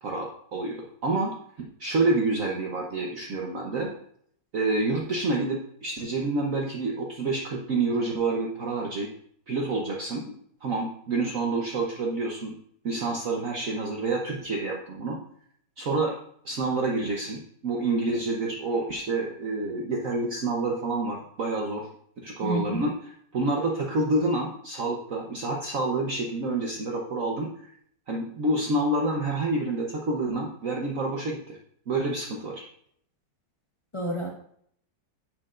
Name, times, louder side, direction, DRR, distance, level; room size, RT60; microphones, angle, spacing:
voice 1, 0.0-1.3 1.6-3.9 4.5-9.1 9.5-10.4 10.6-12.5 12.8-15.2 15.8-16.1 16.4-17.4 17.6-21.9 22.2-22.9 23.3-27.5 28.1-31.6 31.9-32.6, right 2 dB, 55° right, -1 dB, 1.3 m, -28 dB
voice 2, 22.4-22.8 33.9-34.4, right 1 dB, 20° left, -1 dB, 0.9 m, -30 dB
10.5 x 7.6 x 2.5 m, 0.65 s
omnidirectional pair, 1.9 m